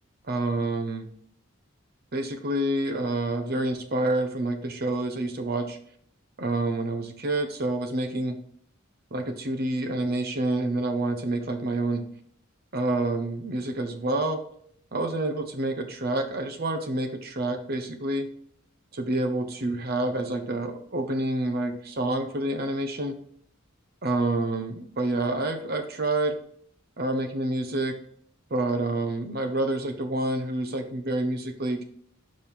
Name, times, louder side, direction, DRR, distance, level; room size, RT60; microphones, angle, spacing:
voice 1, 0.3-1.1 2.1-5.8 6.4-8.4 9.1-12.1 12.7-14.4 14.9-18.3 18.9-23.2 24.0-26.4 27.0-28.0 28.5-31.8, right 2 dB, 45° right, 6 dB, 0.8 m, -28 dB
5.3 x 5.3 x 4.5 m, 0.65 s
head